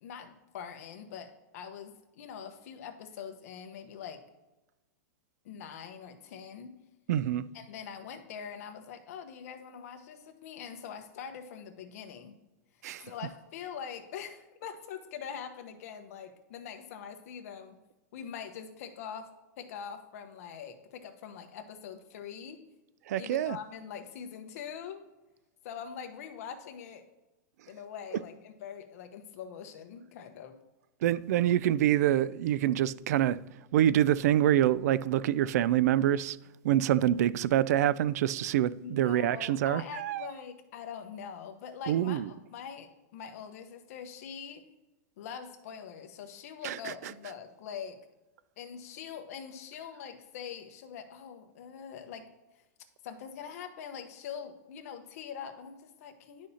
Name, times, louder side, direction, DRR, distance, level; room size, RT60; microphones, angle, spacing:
voice 1, 0.0-4.2 5.4-6.8 7.5-12.4 13.0-17.8 18.1-19.3 19.6-22.6 23.2-25.0 25.6-27.0 27.7-30.6 38.8-44.6 45.2-48.0 48.6-52.3 53.0-56.5, left 7 dB, 55° left, 1.1 m, -43 dB
voice 2, 7.1-7.5 12.8-13.1 23.1-23.6 31.0-33.4 33.7-36.4 36.6-40.3 41.9-42.3 46.6-47.1, right 12 dB, 65° right, 0.4 m, -26 dB
11.0 x 6.3 x 2.8 m
supercardioid pair, 155°, 9 cm